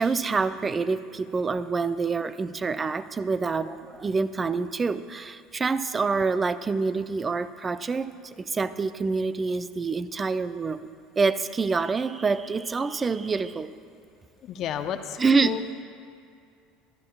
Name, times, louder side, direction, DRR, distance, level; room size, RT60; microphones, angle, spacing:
voice 1, 0.0-10.8 11.2-13.7 15.2-15.6, right 4 dB, 25° right, 13 dB, 0.6 m, -26 dB
voice 2, 14.4-15.8, left 9 dB, 55° left, 7 dB, 0.8 m, -32 dB
27.0 x 13.5 x 2.4 m, 2.4 s
hypercardioid pair, 75°, 0 cm